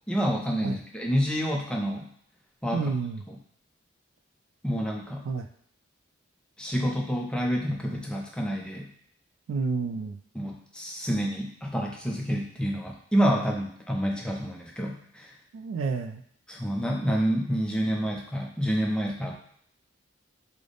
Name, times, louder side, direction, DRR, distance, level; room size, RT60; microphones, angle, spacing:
voice 1, 0.1-2.1 2.6-2.8 3.3-3.4 4.6-5.3 6.6-8.9 10.3-15.3 16.5-19.3, equal, 5° left, 0 dB, 0.4 m, -28 dB
voice 2, 2.7-3.2 5.2-5.5 9.5-10.2 15.5-16.2, right 4 dB, 75° right, 7 dB, 0.3 m, -29 dB
3.3 x 2.0 x 3.8 m, 0.67 s
head